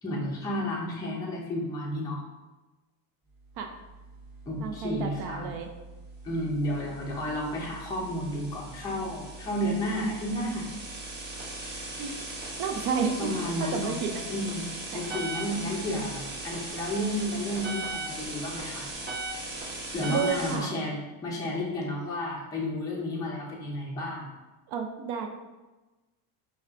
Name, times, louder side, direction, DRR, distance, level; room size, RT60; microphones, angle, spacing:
voice 1, 0.0-2.2 4.5-5.5 6.2-10.7 13.2-13.9 14.3-18.9 19.9-24.3, left 1 dB, 10° left, -3 dB, 0.5 m, -32 dB
sound 1, 3.7-20.6, right 2 dB, 20° right, 0.9 m, -39 dB
voice 2, 4.6-5.7 12.0-12.2 12.6-13.3 13.6-14.2 14.9-15.1 20.1-20.7 24.7-25.3, right 6 dB, 55° right, 4 dB, 0.6 m, -31 dB
5.3 x 2.4 x 3.4 m, 1.1 s
cardioid pair, 155°, 46 cm